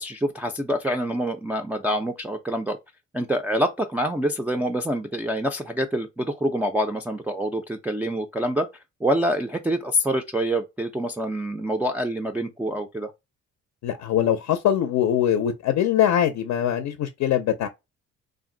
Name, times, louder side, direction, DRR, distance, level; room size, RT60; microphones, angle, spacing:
voice 1, 0.0-2.8 3.1-8.7 9.0-13.1, equal, 5° right, 0.3 m, -26 dB
voice 2, 13.8-17.7, left 10 dB, 65° left, 0.5 m, -22 dB
2.5 x 2.0 x 3.7 m
cardioid pair, 90°, 30 cm